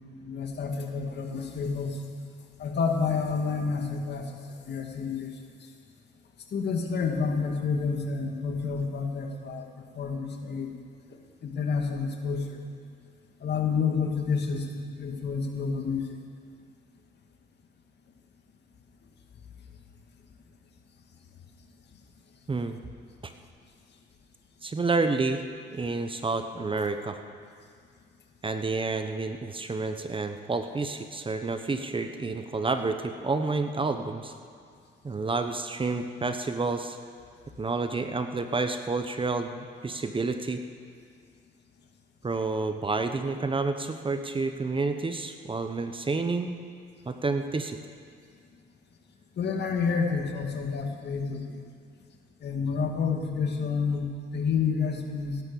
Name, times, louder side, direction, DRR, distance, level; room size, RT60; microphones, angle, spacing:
voice 1, 0.2-2.0 2.6-4.3 4.7-5.3 6.5-9.7 9.9-10.7 11.4-12.6 13.4-16.2 25.8-25.9 49.4-51.6 52.4-55.4, left 5 dB, 60° left, 3 dB, 2.2 m, -29 dB
voice 2, 24.6-25.4 25.7-27.2 28.4-34.3 35.0-37.0 37.6-40.6 42.2-46.6 47.1-47.8, right 3 dB, 25° right, 7 dB, 1.1 m, -29 dB
17.0 x 11.5 x 7.0 m, 2.2 s
cardioid pair, 90°, 20 cm